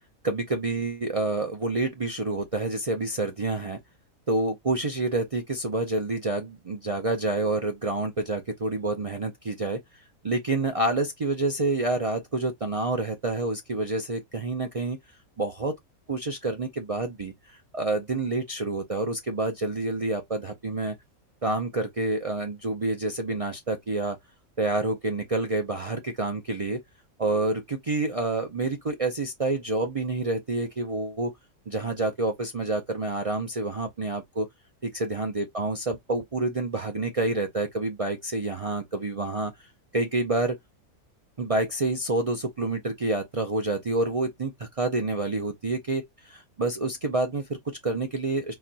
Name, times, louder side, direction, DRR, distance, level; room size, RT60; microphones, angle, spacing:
voice 1, 0.2-3.8 4.3-9.8 10.2-15.0 15.4-15.7 16.1-21.0 21.4-24.2 24.6-26.8 27.2-31.3 31.7-34.5 34.8-39.7 39.9-40.6 41.4-48.5, right 2 dB, 50° right, 0.4 m, -28 dB
4.0 x 2.9 x 2.7 m
omnidirectional pair, 1.4 m